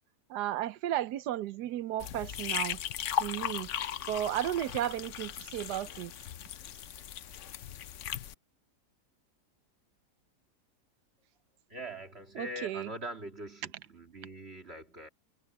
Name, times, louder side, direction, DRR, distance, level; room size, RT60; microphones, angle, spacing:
voice 1, 0.3-2.8 3.2-3.7 4.1-6.1 12.4-12.9, right 12 dB, 80° right, 1.2 m, -34 dB
sound 1, 2.0-8.3, left 10 dB, 60° left, 0.9 m, -37 dB
voice 2, 11.7-15.1, right 1 dB, 40° right, 2.6 m, -43 dB
omnidirectional pair, 1.7 m